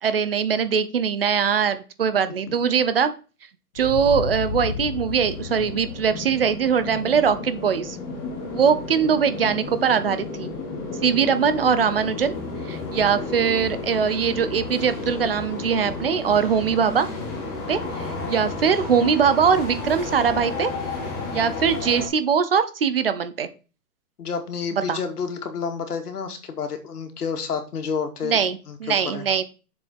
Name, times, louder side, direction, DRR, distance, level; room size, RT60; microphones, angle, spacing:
voice 1, 0.0-3.1 3.7-8.0 8.5-10.5 11.0-12.4 12.7-17.1 17.7-20.7 21.3-23.5 24.9-25.0 28.2-29.4, right 7 dB, 40° right, 12 dB, 0.9 m, -22 dB
voice 2, 2.2-2.5 24.2-28.4 28.7-29.2, left 6 dB, 80° left, 6 dB, 2.5 m, -30 dB
sound 1, 3.8-8.4, left 5 dB, 35° left, 0.6 m, -33 dB
sound 2, 4.4-22.1, left 3 dB, 15° left, 1.3 m, -32 dB
7.0 x 6.7 x 4.3 m, 0.32 s
hypercardioid pair, 180°, 45 cm